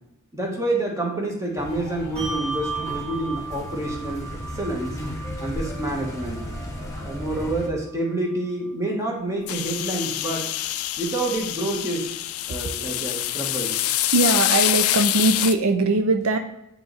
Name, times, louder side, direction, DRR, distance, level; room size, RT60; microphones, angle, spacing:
voice 1, 0.3-4.3 4.5-5.0 5.4-6.4 7.0-10.5 11.0-12.1 12.5-13.7, right 2 dB, 15° right, -1 dB, 1.3 m, -28 dB
sound 1, 1.6-7.7, equal, 15° left, 1.1 m, -35 dB
Bell, 2.2-9.0, right 4 dB, 30° right, 2.0 m, -37 dB
Spraying water from a garden hose, 9.5-15.6, left 14 dB, 75° left, 0.4 m, -25 dB
voice 2, 14.1-16.4, right 2 dB, 75° right, 7 dB, 0.5 m, -20 dB
8.7 x 3.0 x 4.0 m, 0.83 s
head